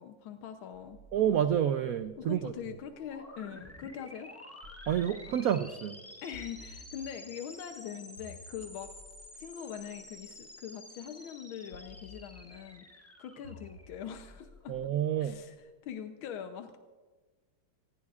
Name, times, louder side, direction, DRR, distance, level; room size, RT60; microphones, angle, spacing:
voice 1, 0.0-1.0 2.2-4.3 6.2-8.9 9.3-14.8 15.2-15.6 15.8-16.8, left 8 dB, 85° left, 6 dB, 1.6 m, -43 dB
sound 1, 0.7-3.5 4.6-5.7 6.3-7.4 8.2-10.4 11.7-12.8 13.4-15.6, left 2 dB, 55° left, 4.9 m, -55 dB
voice 2, 1.1-2.5 4.9-6.0 14.7-15.4, right 10 dB, 80° right, 9 dB, 0.7 m, -29 dB
sound 2, 2.9-14.6, left 1 dB, 15° left, 0.5 m, -51 dB
26.0 x 19.0 x 2.5 m, 1.3 s
omnidirectional pair, 2.2 m